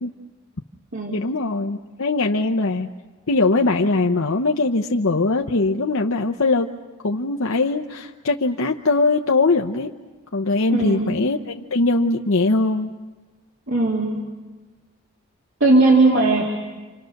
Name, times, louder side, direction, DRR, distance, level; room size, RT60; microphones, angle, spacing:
voice 1, 1.1-2.9 3.3-6.7 7.0-9.9 10.3-12.9, left 3 dB, 65° left, 2 dB, 0.9 m, -21 dB
voice 2, 10.7-11.2 13.7-14.2 15.6-16.4, right 2 dB, 60° right, -2 dB, 3.0 m, -18 dB
29.5 x 27.0 x 6.6 m, 1.3 s
head